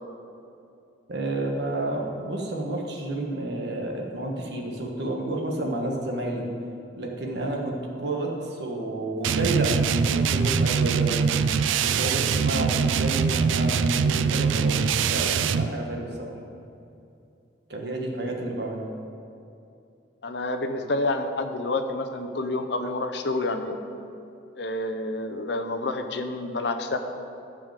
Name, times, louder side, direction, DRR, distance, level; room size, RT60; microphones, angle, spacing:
voice 1, 1.1-6.4 6.9-11.4 11.8-16.4 17.7-18.8, right 2 dB, 60° right, 0 dB, 1.4 m, -30 dB
sound 1, 9.2-15.7, right 6 dB, 90° right, 0.4 m, -23 dB
voice 2, 20.2-23.8 24.6-27.0, left 2 dB, 65° left, 7 dB, 0.7 m, -28 dB
10.5 x 5.0 x 7.4 m, 2.6 s
head